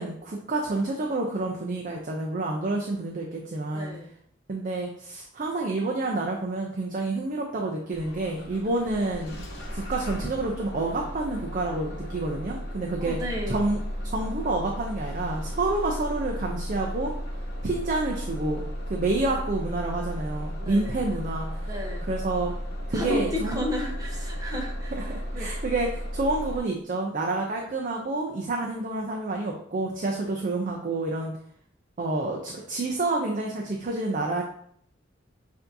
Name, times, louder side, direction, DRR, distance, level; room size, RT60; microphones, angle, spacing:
voice 1, 0.0-3.9 4.5-13.2 13.5-13.8 14.1-17.1 17.6-18.6 18.9-21.7 22.1-22.5 22.9-23.6 24.9-31.3 32.0-34.4, right 2 dB, 45° right, 0 dB, 0.5 m, -29 dB
voice 2, 3.7-4.1 13.0-13.6 19.3-19.4 20.6-21.2 21.6-22.0 22.9-25.0 25.3-25.6, left 1 dB, 20° right, 0 dB, 0.9 m, -33 dB
Bus / Engine starting, 7.9-26.6, equal, 60° left, 1.0 m, -34 dB
6.7 x 2.7 x 2.6 m, 0.65 s
head